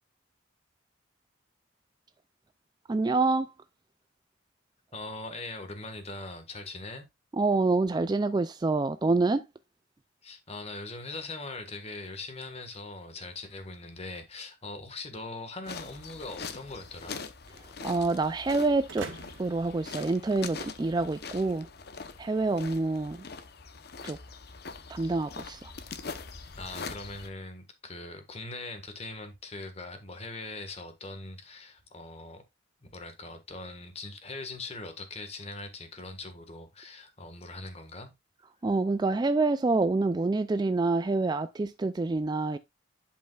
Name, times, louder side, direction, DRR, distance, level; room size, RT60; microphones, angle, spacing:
voice 1, 2.9-3.5 7.3-9.4 17.8-19.1 19.4-21.7 22.2-23.2 24.0-24.2 24.9-25.7 38.6-42.6, right 3 dB, 20° right, 0.3 m, -27 dB
voice 2, 4.9-7.1 10.2-17.2 26.6-32.4 32.8-38.1, left 2 dB, 30° left, 1.6 m, -41 dB
sound 1, 15.6-27.3, left 5 dB, 50° left, 0.8 m, -43 dB
sound 2, 18.9-20.8, right 3 dB, 75° right, 1.8 m, -45 dB
11.0 x 5.4 x 2.4 m
head